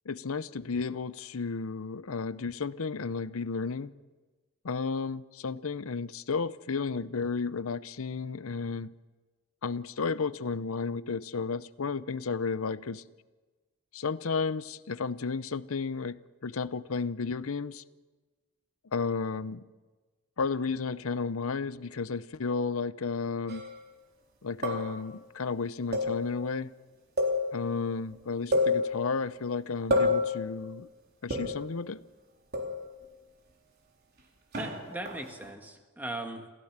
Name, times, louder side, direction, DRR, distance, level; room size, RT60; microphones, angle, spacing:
voice 1, 0.1-3.9 4.6-8.9 9.6-13.0 13.9-17.8 18.9-19.6 20.4-23.6 24.4-26.7 27.5-30.9 31.2-32.0, left 4 dB, 70° left, 0.7 m, -33 dB
sound 1, 23.5-23.8 24.6-25.1 25.9-26.5 27.2-27.8 28.1-28.2 28.5-29.3 29.9-30.5 31.3-31.8 32.5-33.0 34.5-35.5, left 2 dB, 45° right, 3.9 m, -29 dB
voice 2, 34.5-36.5, right 1 dB, 10° right, 1.7 m, -39 dB
28.5 x 15.5 x 7.4 m
head